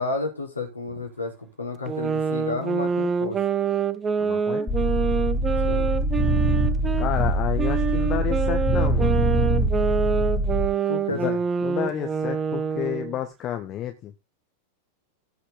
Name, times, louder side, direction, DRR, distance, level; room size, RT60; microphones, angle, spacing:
voice 1, 0.0-3.4 5.6-5.9 10.9-11.4, left 3 dB, 80° left, 3.5 m, -31 dB
sound 1, 1.9-7.1 7.6-13.2, right 6 dB, 20° right, 0.8 m, -26 dB
voice 2, 4.2-4.7 7.0-9.2 11.1-11.3 11.6-14.1, left 11 dB, 35° left, 1.3 m, -30 dB
sound 2, 4.7-10.7, right 1 dB, 10° left, 2.7 m, -23 dB
16.0 x 5.8 x 3.7 m
figure-of-eight pair, 90°, 0 cm